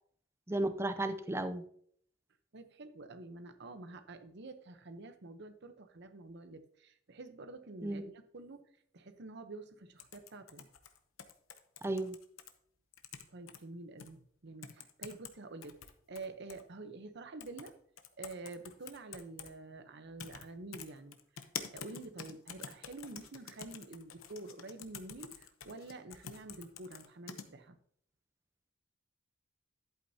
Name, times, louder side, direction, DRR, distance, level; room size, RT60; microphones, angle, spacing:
voice 1, 0.5-1.6 7.8-8.0 11.8-12.1, right 1 dB, 15° right, 10 dB, 0.5 m, -34 dB
voice 2, 2.5-8.6 8.9-10.7 13.3-15.8 16.1-17.7 18.2-21.2 21.7-27.8, right 2 dB, 60° right, 9 dB, 0.9 m, -48 dB
sound 1, 10.0-12.5 12.9-13.6 14.0-14.1 14.6-15.3 15.6-16.6 17.4-17.7 18.0-19.5 20.2-20.4 20.7-27.4, left 7 dB, 80° left, 0.9 m, -47 dB
11.0 x 8.4 x 2.8 m, 0.62 s
head